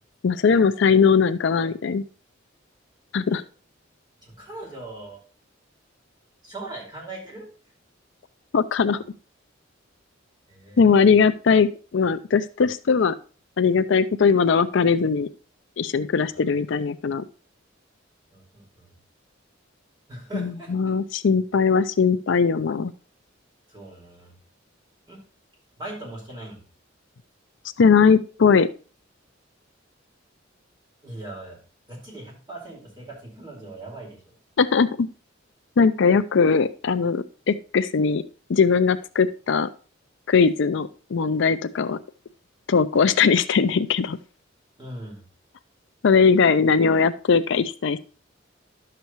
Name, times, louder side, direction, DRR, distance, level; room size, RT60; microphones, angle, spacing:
voice 1, 0.2-2.0 3.1-3.4 8.5-9.0 10.8-11.7 11.9-13.2 13.6-15.3 15.8-17.2 20.3-22.9 27.8-28.7 34.6-35.1 35.8-38.2 38.5-39.7 40.3-42.0 42.7-44.2 46.0-48.0, left 5 dB, 65° left, 13 dB, 0.5 m, -20 dB
voice 2, 4.2-5.2 6.4-7.5 10.5-11.0 16.2-16.4 18.3-18.9 20.1-20.7 23.7-24.3 25.1-25.2 25.8-26.6 31.0-31.6 31.9-34.3 44.8-45.2, right 2 dB, 25° right, -3 dB, 4.6 m, -40 dB
11.5 x 6.8 x 3.0 m, 0.38 s
head